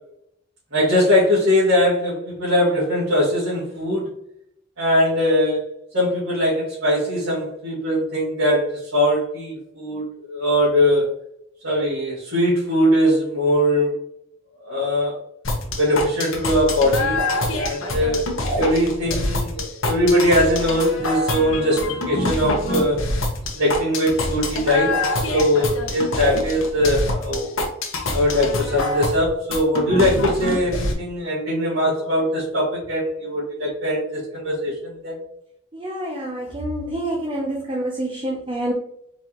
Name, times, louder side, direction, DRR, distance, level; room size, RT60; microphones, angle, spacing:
voice 1, 0.7-4.1 4.8-5.6 5.9-11.1 11.6-14.0 14.6-15.2 15.8-18.2 18.6-23.0 23.5-25.0 25.3-27.5 28.1-35.2, equal, 70° right, -9 dB, 1.9 m, -21 dB
sound 1, 15.4-30.9, left 1 dB, 75° left, 1.1 m, -25 dB
voice 2, 35.7-38.7, right 1 dB, 25° right, -1 dB, 0.6 m, -27 dB
4.7 x 3.8 x 2.9 m, 0.73 s
head